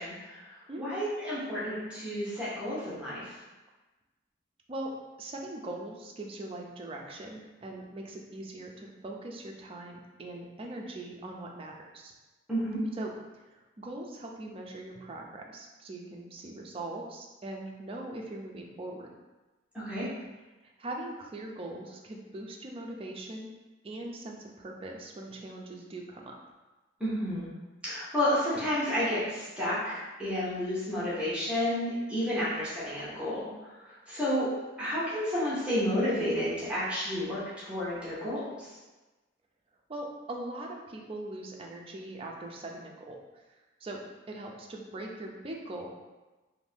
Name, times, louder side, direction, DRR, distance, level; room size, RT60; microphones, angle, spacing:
voice 1, 0.0-3.3 12.5-12.8 19.7-20.1 27.0-27.5 27.8-33.5 33.9-34.5 34.8-38.7, equal, 5° right, -10 dB, 0.8 m, -31 dB
voice 2, 5.2-12.1 13.0-13.1 13.5-19.1 20.8-23.5 23.8-26.4 39.9-43.4 43.8-45.9, right 2 dB, 30° right, 0 dB, 0.4 m, -41 dB
2.6 x 2.6 x 3.4 m, 1.1 s
head